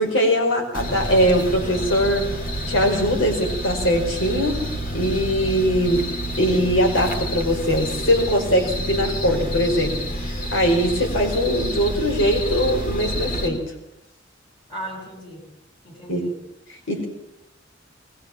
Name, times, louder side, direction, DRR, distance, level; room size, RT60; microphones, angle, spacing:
voice 1, 0.0-2.3 2.7-4.6 4.9-6.1 6.4-13.6 16.1-16.2 16.7-17.1, equal, 85° left, 3 dB, 5.0 m, -21 dB
sound 1, 0.7-13.5, equal, 45° left, 3.7 m, -29 dB
voice 2, 14.7-15.5 15.8-16.4, equal, 25° left, 2 dB, 7.0 m, -36 dB
21.5 x 20.5 x 7.4 m, 0.86 s
head